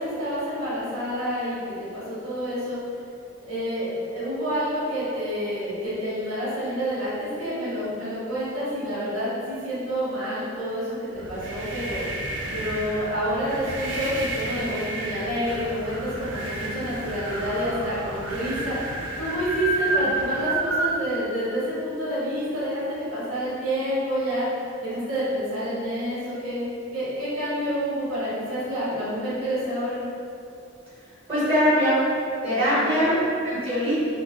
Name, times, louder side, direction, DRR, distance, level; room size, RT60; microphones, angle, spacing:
voice 1, 0.0-2.8 3.4-12.0 12.5-18.8 19.2-24.5 24.8-30.0 32.5-33.1, equal, 85° right, -11 dB, 1.1 m, -28 dB
sound 1, 11.1-20.9, right 2 dB, 55° right, 0.3 m, -30 dB
voice 2, 31.3-32.0 32.4-33.9, equal, 25° right, -13 dB, 1.3 m, -22 dB
2.5 x 2.1 x 3.5 m, 2.6 s
head